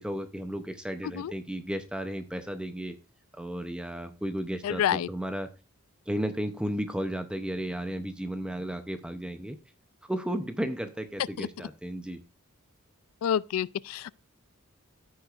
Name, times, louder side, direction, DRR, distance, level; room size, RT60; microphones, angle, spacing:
voice 1, 0.0-3.0 3.3-5.5 6.1-9.6 10.1-12.2, right 1 dB, 5° right, 0.6 m, -34 dB
voice 2, 4.6-5.1 11.4-11.5 13.2-14.1, left 9 dB, 70° left, 0.3 m, -28 dB
14.5 x 6.3 x 2.4 m
head